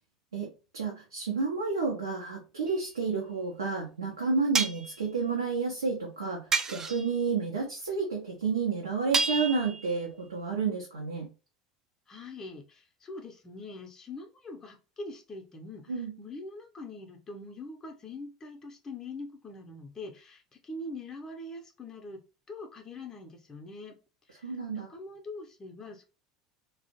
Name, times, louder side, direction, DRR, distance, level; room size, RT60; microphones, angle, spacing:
voice 1, 0.3-11.3 15.9-16.1 24.4-24.9, right 5 dB, 75° right, -2 dB, 0.5 m, -31 dB
sound 1, 2.7-2.8 4.5-5.0 6.5-7.1 9.1-10.0, right 4 dB, 20° right, 0.3 m, -30 dB
voice 2, 12.1-22.2 22.5-24.0 24.3-26.0, left 2 dB, 25° left, 2 dB, 0.6 m, -43 dB
2.4 x 2.0 x 2.7 m, 0.31 s
figure-of-eight pair, 70°, 2 cm